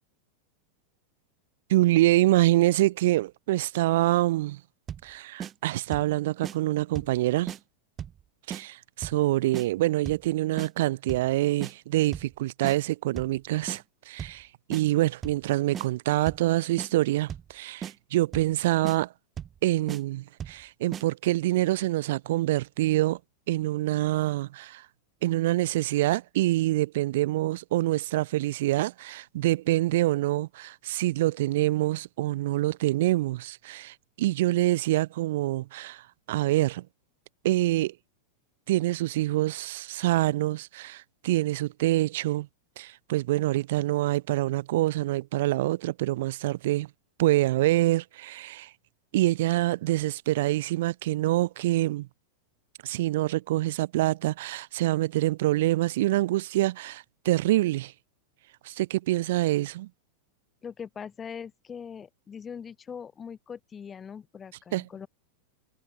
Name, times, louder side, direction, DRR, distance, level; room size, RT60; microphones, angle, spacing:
voice 1, 1.7-4.6 5.0-7.5 8.5-19.1 19.6-23.2 23.5-24.8 25.2-36.0 36.3-36.8 37.4-37.9 38.7-42.5 42.8-46.9 47.2-48.7 49.1-52.1 52.8-57.9 58.6-59.9 64.7-64.9, right 16 dB, 55° right, 1.2 m, -26 dB
sound 1, 4.9-5.1 5.4-5.5 5.9-6.1 6.4-6.6 6.9-7.2 7.5-7.6 8.0-8.2 8.5-8.6 9.0-9.2 9.5-9.7 10.1-10.3 10.6-10.7 11.1-11.3 11.6-11.7 12.1-12.3 12.6-12.8 13.2-13.4 13.7-13.8 14.2-14.4 14.7-14.8 15.2-15.4 15.7-15.9 16.3-16.5 16.8-16.9 17.3-17.5 17.8-17.9 18.3-18.6 18.8-19.0 19.4-19.6 19.9-20.0 20.4-20.6 20.9-21.0, right 9 dB, 25° right, 3.9 m, -36 dB
voice 2, 60.6-65.1, left 7 dB, 20° left, 1.5 m, -41 dB
figure-of-eight pair, 90°, 0 cm